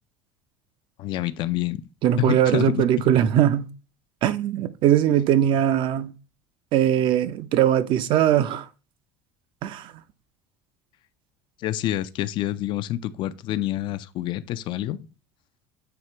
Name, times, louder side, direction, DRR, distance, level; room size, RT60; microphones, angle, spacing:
voice 1, 1.0-1.8 2.2-2.9 11.6-15.1, left 14 dB, 50° left, 0.5 m, -27 dB
voice 2, 2.0-3.7 4.2-6.1 6.7-8.7 9.6-9.8, right 11 dB, 50° right, 0.6 m, -20 dB
7.8 x 2.8 x 4.4 m
supercardioid pair, 125°, 11 cm